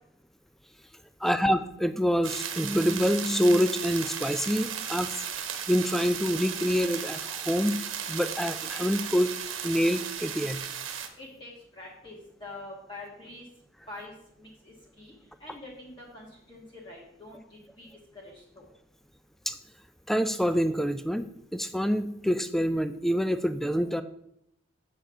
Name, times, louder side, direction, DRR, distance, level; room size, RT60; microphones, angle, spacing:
voice 1, 1.2-7.8 8.1-9.3 9.6-10.6 19.5-19.6 20.1-21.2 21.5-24.0, equal, ahead, 11 dB, 0.4 m, -26 dB
sound 1, 2.2-11.1, right 8 dB, 80° right, 1.1 m, -35 dB
voice 2, 11.2-13.4 13.9-14.1 14.4-15.1 15.4-17.9 18.1-18.7, left 2 dB, 25° left, -5 dB, 1.8 m, -45 dB
7.5 x 7.0 x 5.6 m, 0.76 s
head